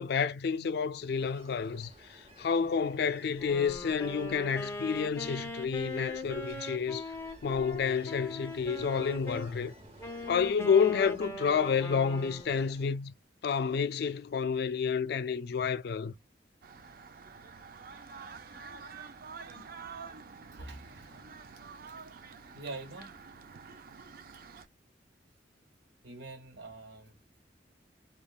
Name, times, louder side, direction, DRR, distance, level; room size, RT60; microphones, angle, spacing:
voice 1, 0.0-7.1 7.4-9.7 10.3-13.1 13.4-16.1, left 6 dB, 60° left, 0.3 m, -29 dB
Ocean, 0.8-13.0, right 1 dB, 35° right, 1.0 m, -55 dB
Wind instrument woodwind instrument, 3.3-9.5 10.0-12.6, left 1 dB, 15° left, 0.6 m, -41 dB
sound 1, 16.6-24.7, right 5 dB, 55° right, 0.5 m, -48 dB
voice 2, 20.5-21.4 22.5-23.1 26.0-27.1, right 2 dB, 85° right, 1.5 m, -45 dB
3.3 x 2.2 x 2.3 m
head